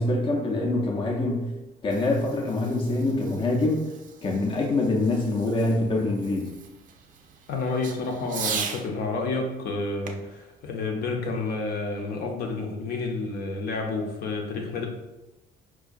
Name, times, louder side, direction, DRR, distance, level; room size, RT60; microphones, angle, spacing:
voice 1, 0.0-1.5 1.8-3.9 4.2-6.5, left 2 dB, 30° left, 1 dB, 0.5 m, -25 dB
Fireworks, 1.6-8.9 10.0-11.7, right 6 dB, 50° right, 0.4 m, -39 dB
voice 2, 7.5-14.9, left 3 dB, 70° left, 2 dB, 0.6 m, -30 dB
4.6 x 2.2 x 2.5 m, 1.0 s
cardioid pair, 110°, 17 cm